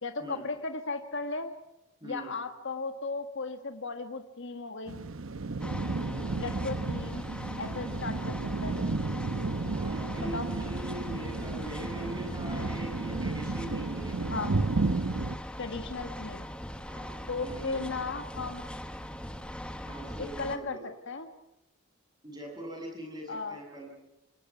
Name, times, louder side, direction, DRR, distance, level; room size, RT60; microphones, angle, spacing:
voice 1, 0.0-1.5 2.0-5.0 6.4-7.3 7.6-8.8 10.2-10.5 14.3-14.5 15.6-16.5 17.3-18.7 20.4-20.8 21.1-21.3 23.3-23.6, left 3 dB, 55° left, 7 dB, 1.5 m, -36 dB
voice 2, 2.0-2.3 9.7-14.1 16.8-17.9 19.8-20.8 22.2-23.9, right 1 dB, 20° right, 1 dB, 7.2 m, -42 dB
sound 1, 4.9-15.4, right 3 dB, 65° right, 0.9 m, -33 dB
sound 2, 5.6-20.6, equal, 5° left, 1.1 m, -41 dB
27.0 x 19.0 x 5.8 m, 0.91 s
head